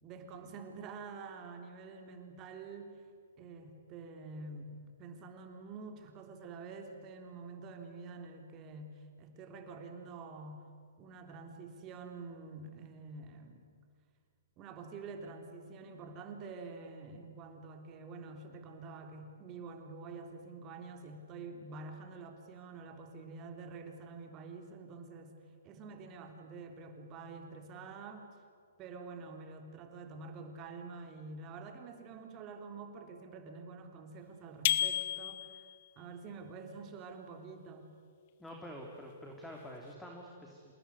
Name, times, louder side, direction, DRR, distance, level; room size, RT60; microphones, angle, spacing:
voice 1, 0.0-3.0 3.4-10.7 11.0-13.6 14.6-25.3 25.6-28.3 28.8-35.7 36.0-37.9, right 4 dB, 30° right, 5 dB, 3.5 m, -47 dB
sound 1, 34.7-35.7, left 12 dB, 50° left, 1.2 m, -31 dB
voice 2, 38.4-40.7, equal, 5° left, 0 dB, 3.3 m, -47 dB
27.5 x 19.5 x 9.7 m, 2.1 s
hypercardioid pair, 125°, 0 cm